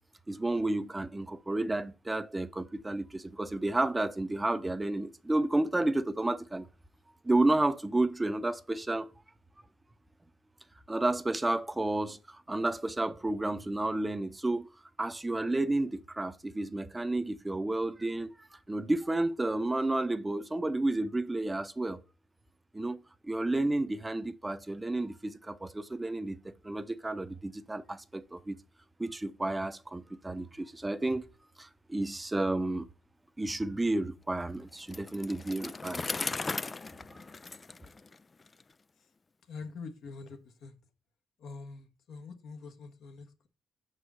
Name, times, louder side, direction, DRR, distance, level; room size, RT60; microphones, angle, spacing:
voice 1, 0.3-6.7 7.2-9.1 10.9-14.7 15.0-18.3 18.7-22.0 22.7-28.6 29.0-31.3 31.6-32.9 33.4-36.3, right 2 dB, 15° right, 0.8 m, -31 dB
Bicycle, 34.8-38.6, left 3 dB, 30° left, 0.3 m, -37 dB
voice 2, 39.5-40.7 41.4-43.5, left 4 dB, 75° left, 1.3 m, -45 dB
6.1 x 4.8 x 5.6 m
supercardioid pair, 65°, 0 cm